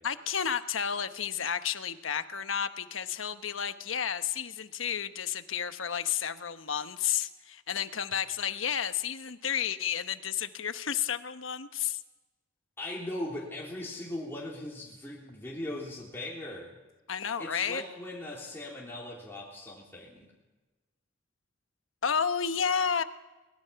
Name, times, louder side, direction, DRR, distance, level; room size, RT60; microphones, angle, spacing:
voice 1, 0.0-12.0 17.1-17.8 22.0-23.0, left 8 dB, 85° left, 10 dB, 1.1 m, -31 dB
voice 2, 12.8-16.7 17.4-20.3, left 1 dB, 10° left, -5 dB, 3.5 m, -39 dB
23.5 x 20.5 x 5.8 m, 1.2 s
head